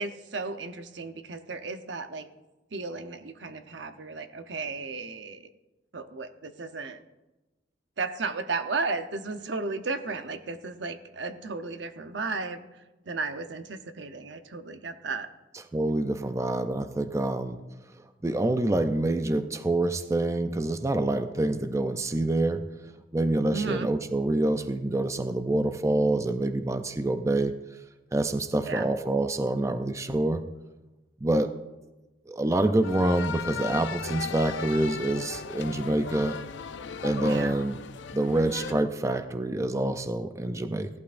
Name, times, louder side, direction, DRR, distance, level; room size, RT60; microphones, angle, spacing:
voice 1, 0.0-2.3 2.7-5.5 5.9-7.0 8.0-15.3 23.5-23.9 28.7-28.9 37.2-37.6, right 4 dB, 75° right, 8 dB, 0.8 m, -34 dB
voice 2, 15.7-17.6 18.2-22.6 23.1-27.5 28.1-30.4 31.2-31.5 32.3-36.4 37.0-37.8 38.1-40.9, right 1 dB, 15° right, 8 dB, 0.5 m, -26 dB
sound 1, 32.8-38.7, left 6 dB, 85° left, 0.5 m, -37 dB
17.0 x 12.0 x 2.6 m, 1.1 s
head